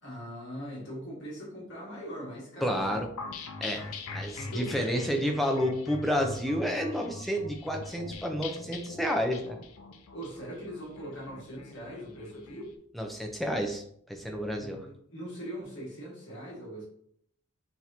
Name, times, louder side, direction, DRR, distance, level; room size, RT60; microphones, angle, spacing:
voice 1, 0.0-3.0 4.3-5.0 10.1-12.7 14.6-16.8, equal, 55° left, -4 dB, 1.6 m, -41 dB
voice 2, 2.6-3.1 3.6-9.6 12.9-14.8, equal, ahead, 2 dB, 0.5 m, -30 dB
sound 1, 3.2-12.6, left 3 dB, 90° left, 0.6 m, -42 dB
6.1 x 2.9 x 2.7 m, 0.66 s
head